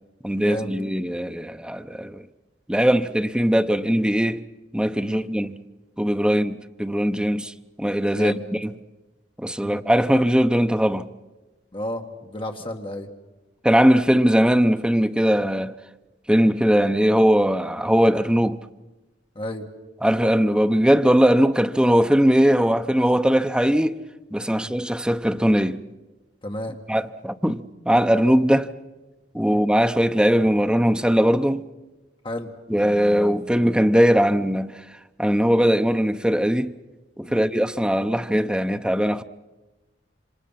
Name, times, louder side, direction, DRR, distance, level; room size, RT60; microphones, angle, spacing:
voice 1, 0.2-2.2 2.7-4.5 4.7-5.6 6.0-8.7 9.4-11.1 13.6-15.7 16.3-18.6 20.0-24.0 24.3-25.8 26.9-28.7 29.3-31.6 32.7-34.7 35.2-36.8 37.2-39.2, equal, 5° right, 0.7 m, -20 dB
voice 2, 8.1-8.4 9.6-9.8 11.7-13.1 19.4-19.7 24.5-24.7 26.4-26.8 29.4-29.6 32.2-32.5 37.3-37.5, left 1 dB, 30° left, 1.9 m, -32 dB
27.5 x 25.5 x 5.8 m
head